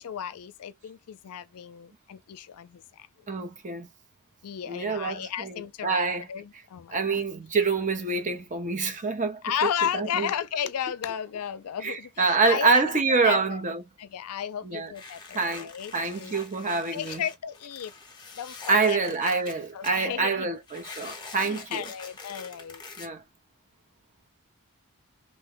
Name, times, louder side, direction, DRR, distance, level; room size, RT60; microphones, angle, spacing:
voice 1, 0.0-2.8 4.4-6.0 6.3-7.0 9.4-12.8 13.1-13.6 14.0-16.3 16.9-17.9 18.4-19.0 19.7-20.5 21.4-22.8, left 9 dB, 80° left, 0.4 m, -34 dB
voice 2, 3.3-3.9 4.7-6.3 6.9-9.4 9.9-10.3 11.8-13.8 14.6-14.9 15.3-17.2 18.7-21.9 23.0-23.2, right 4 dB, 35° right, 0.6 m, -26 dB
sound 1, 14.9-20.0 20.7-23.1, left 4 dB, 20° left, 0.9 m, -44 dB
3.1 x 2.1 x 3.6 m
head